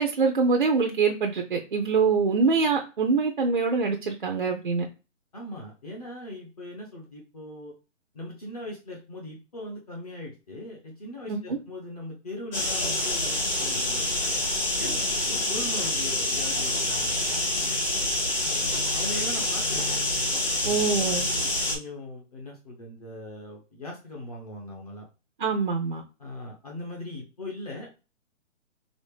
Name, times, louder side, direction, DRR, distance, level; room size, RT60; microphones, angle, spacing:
voice 1, 0.0-4.9 11.3-11.6 20.7-21.3 25.4-26.0, right 4 dB, 45° right, 3 dB, 0.4 m, -24 dB
voice 2, 5.3-7.7 8.1-14.2 14.8-17.5 18.4-20.0 20.6-20.9 21.7-25.1 26.2-27.9, left 1 dB, 30° left, -1 dB, 0.8 m, -40 dB
sound 1, 12.5-21.8, left 1 dB, 45° left, 1.8 m, -27 dB
4.1 x 2.9 x 3.2 m, 0.32 s
hypercardioid pair, 170°, 39 cm